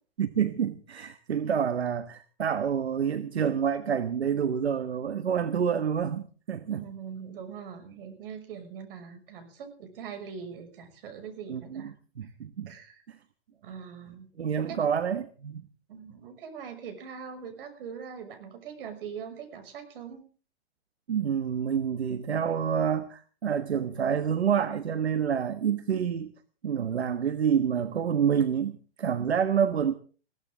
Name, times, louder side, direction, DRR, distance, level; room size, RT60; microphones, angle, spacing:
voice 1, 0.2-6.8 11.5-12.7 13.1-13.2 14.4-15.6 21.1-26.3 26.6-29.9, right 8 dB, 80° right, 1.3 m, -28 dB
voice 2, 6.7-11.9 12.2-12.3 12.7-13.0 13.6-14.3 14.7-14.9 15.9-20.2, right 7 dB, 60° right, 6.4 m, -42 dB
21.5 x 16.5 x 3.7 m
hypercardioid pair, 125°, 31 cm